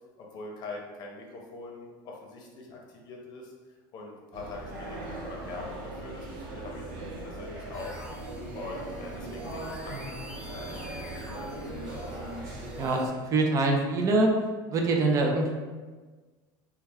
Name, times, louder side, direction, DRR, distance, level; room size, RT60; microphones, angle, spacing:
voice 1, 0.2-3.5 3.9-12.2, left 3 dB, 40° left, -1 dB, 0.8 m, -43 dB
sound 1, 4.3-12.9, right 2 dB, 75° right, 0.8 m, -39 dB
sound 2, 7.7-13.1, equal, 5° right, 1.3 m, -44 dB
voice 2, 12.8-14.3 14.7-15.5, right 2 dB, 30° right, 1 dB, 0.5 m, -25 dB
3.3 x 2.3 x 3.4 m, 1.4 s
supercardioid pair, 140°, 11 cm